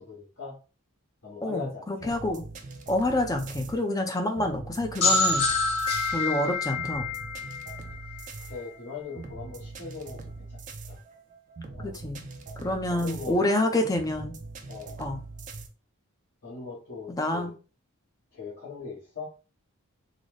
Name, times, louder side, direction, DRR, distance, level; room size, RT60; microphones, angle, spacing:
voice 1, 0.1-0.6 1.2-2.1 8.4-10.2 10.5-10.6 10.8-11.0 11.7-11.9 12.9-13.4 14.7-15.0 16.4-17.5 18.3-19.3, left 5 dB, 60° left, -7 dB, 1.1 m, -40 dB
voice 2, 1.4-2.4 2.9-5.5 6.1-7.1 11.8-12.2 12.6-14.4 15.0-15.2 17.1-17.5, left 1 dB, 15° left, 5 dB, 0.5 m, -27 dB
sound 1, 2.0-15.7, right 3 dB, 35° right, 0.5 m, -42 dB
sound 2, 5.0-8.7, left 3 dB, 90° left, 1.6 m, -27 dB
3.9 x 2.1 x 3.1 m, 0.34 s
head